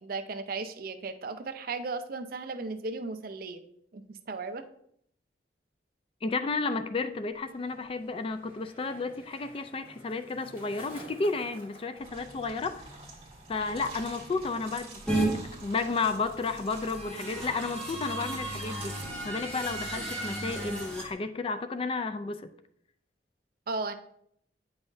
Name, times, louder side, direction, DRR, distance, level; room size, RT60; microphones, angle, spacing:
voice 1, 0.0-3.6 3.9-4.6 23.7-23.9, right 3 dB, 55° right, 8 dB, 0.5 m, -36 dB
voice 2, 6.2-12.8 13.5-18.9 19.2-22.5, left 3 dB, 30° left, 9 dB, 0.4 m, -32 dB
Skateboard, 6.8-14.3 14.6-15.1, equal, 50° left, 2.7 m, -53 dB
sound 1, 12.0-21.1, right 2 dB, 35° right, 1.9 m, -47 dB
sound 2, 15.1-15.3 16.7-21.0, right 2 dB, 5° left, 1.6 m, -34 dB
8.9 x 5.5 x 2.6 m, 0.70 s
head